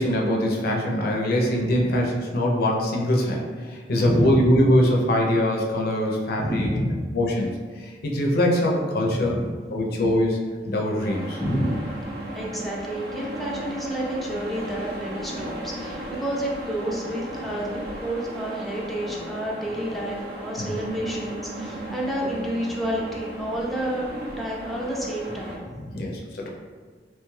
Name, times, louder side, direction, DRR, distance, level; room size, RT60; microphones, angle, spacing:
voice 1, 0.0-6.7 7.1-9.4 9.7-10.4 10.7-11.4 20.6-20.8 25.9-26.5, left 1 dB, 60° left, -1 dB, 0.5 m, -23 dB
voice 2, 4.0-4.4 6.4-7.0 9.1-9.5 11.4-11.7 12.3-24.1 24.4-26.0, equal, ahead, -4 dB, 0.3 m, -30 dB
sound 1, 11.0-25.6, right 1 dB, 65° right, 0.6 m, -35 dB
2.9 x 2.2 x 3.1 m, 1.5 s
head